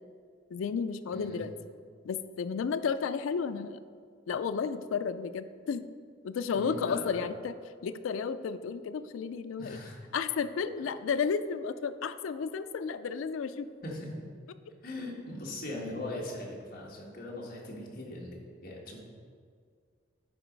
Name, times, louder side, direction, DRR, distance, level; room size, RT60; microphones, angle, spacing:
voice 1, 0.5-1.5 2.0-3.8 4.3-5.9 6.2-7.6 7.8-9.8 10.1-13.7, left 6 dB, 90° left, 11 dB, 0.4 m, -32 dB
voice 2, 6.5-7.2 9.6-10.0 13.8-14.1 14.8-18.4 18.6-19.0, left 1 dB, 45° left, -2 dB, 1.5 m, -40 dB
9.6 x 4.0 x 5.1 m, 2.1 s
head